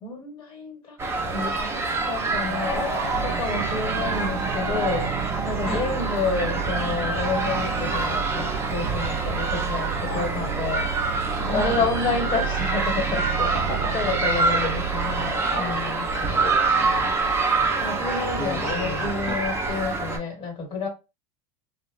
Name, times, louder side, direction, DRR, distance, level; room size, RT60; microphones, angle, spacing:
voice 1, 0.0-1.0 1.2-3.0 3.2-5.1 5.4-10.9 11.4-13.5 13.9-16.1 17.8-20.9, left 4 dB, 30° left, 1.3 m, -29 dB
sound 1, 1.0-20.2, right 3 dB, 15° right, 0.7 m, -26 dB
sound 2, 2.3-9.0, right 4 dB, 50° right, 0.9 m, -39 dB
sound 3, 3.1-15.3, right 9 dB, 75° right, 0.5 m, -32 dB
voice 2, 10.0-10.5 11.4-11.9 13.5-13.9 14.4-15.1 15.5-15.8 16.1-16.6 18.4-19.4, left 3 dB, 50° left, 0.8 m, -34 dB
2.9 x 2.2 x 2.4 m
supercardioid pair, 140°, 18 cm